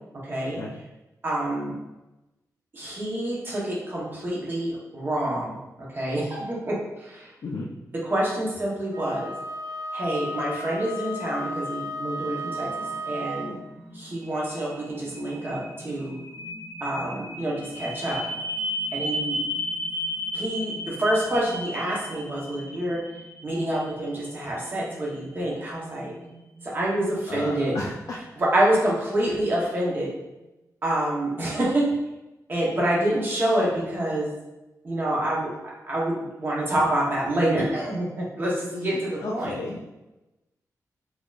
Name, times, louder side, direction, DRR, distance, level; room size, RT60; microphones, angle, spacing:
voice 1, 0.2-0.6 1.2-1.8 2.7-5.6 5.9-7.3 8.0-9.3 9.9-13.6 13.9-16.2 16.8-18.2 18.9-19.4 20.3-23.0 23.4-26.1 26.6-27.7 28.4-30.1 30.8-31.9 32.5-34.3 34.8-39.6, right 1 dB, 35° right, -5 dB, 0.9 m, -27 dB
Wind instrument woodwind instrument, 8.9-13.6, equal, 60° right, 0.3 m, -34 dB
sound 1, 12.1-29.8, equal, 5° right, 0.8 m, -36 dB
voice 2, 27.3-28.2 38.7-40.0, left 2 dB, 60° left, -4 dB, 0.5 m, -33 dB
4.2 x 2.8 x 2.4 m, 1.0 s
wide cardioid pair, 160°, 6 cm